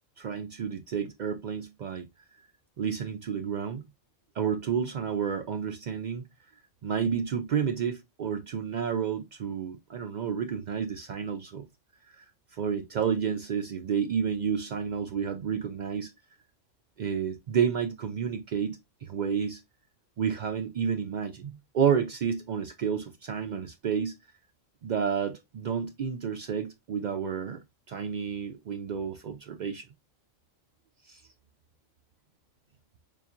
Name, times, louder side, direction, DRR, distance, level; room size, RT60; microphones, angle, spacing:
voice 1, 0.2-2.1 2.8-3.8 4.3-6.3 6.8-11.6 12.1-12.2 12.5-16.1 17.0-19.6 20.2-24.2 24.8-29.9 31.0-31.2, right 7 dB, 75° right, 0.4 m, -30 dB
6.9 x 2.4 x 2.5 m
omnidirectional pair, 1.3 m